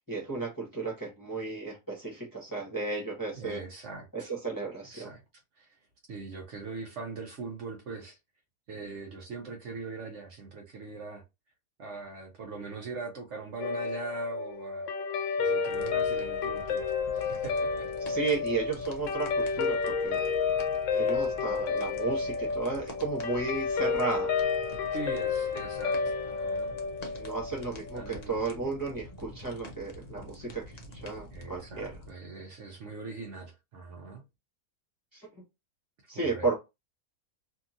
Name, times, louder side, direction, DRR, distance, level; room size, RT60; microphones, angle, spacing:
voice 1, 0.1-3.6 4.1-5.1 18.1-20.3 20.9-24.3 27.2-31.9 35.1-35.2 36.1-36.5, right 3 dB, 15° left, 0.9 m, -33 dB
voice 2, 3.3-4.3 4.9-5.2 5.6-5.8 6.1-8.2 8.7-11.2 11.8-14.9 15.4-16.9 17.1-17.9 24.9-26.8 27.9-28.3 31.3-34.2 36.1-36.5, right 4 dB, 60° right, 1.0 m, -41 dB
Guitar, 13.6-28.2, left 5 dB, 70° left, 0.8 m, -31 dB
sound 1, 15.7-32.1, left 1 dB, 50° left, 0.5 m, -47 dB
2.8 x 2.7 x 2.4 m
omnidirectional pair, 1.5 m